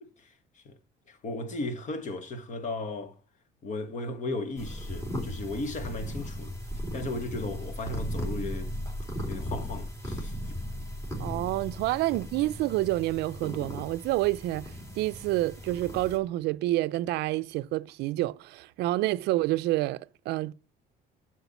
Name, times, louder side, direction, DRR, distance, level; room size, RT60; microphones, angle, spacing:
voice 1, 1.1-3.1 3.6-6.5 6.9-8.7 9.3-10.5, left 2 dB, 45° left, 1.4 m, -35 dB
sound 1, 4.6-16.2, equal, 15° left, 2.8 m, -37 dB
voice 2, 11.2-14.7 15.0-20.5, right 17 dB, 85° right, 0.4 m, -28 dB
8.1 x 6.4 x 4.1 m
cardioid pair, 110°, 17 cm